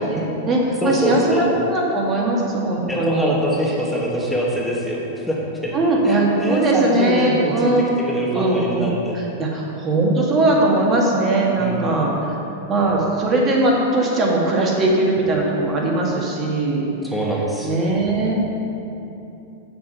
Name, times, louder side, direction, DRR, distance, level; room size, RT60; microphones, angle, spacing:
voice 1, 0.0-3.3 5.7-7.9 8.3-12.4 12.7-16.8 17.6-18.4, right 2 dB, 25° right, -2 dB, 1.9 m, -20 dB
voice 2, 0.8-1.4 2.9-5.7 6.0-9.2 11.6-11.9 17.1-17.7, equal, ahead, -4 dB, 1.6 m, -24 dB
7.4 x 6.9 x 5.6 m, 2.9 s
hypercardioid pair, 130°, 0 cm